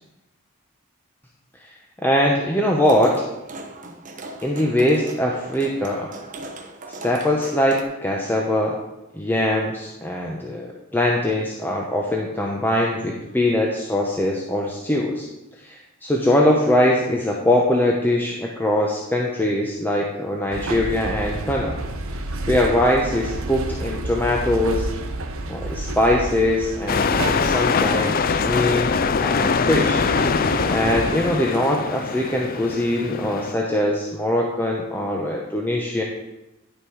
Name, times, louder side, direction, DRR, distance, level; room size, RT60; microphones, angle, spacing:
voice 1, 2.0-3.1 4.4-6.1 7.0-8.8 9.1-15.3 15.6-21.8 22.5-24.9 25.5-28.9 29.2-30.0 30.7-36.0, left 1 dB, 10° left, -1 dB, 0.8 m, -22 dB
sound 1, 2.8-7.8, right 2 dB, 35° right, 1.0 m, -39 dB
sound 2, 20.5-31.1, right 2 dB, 70° right, 0.8 m, -30 dB
sound 3, 26.9-33.5, left 5 dB, 40° left, 0.4 m, -23 dB
10.5 x 5.9 x 4.8 m, 0.97 s
head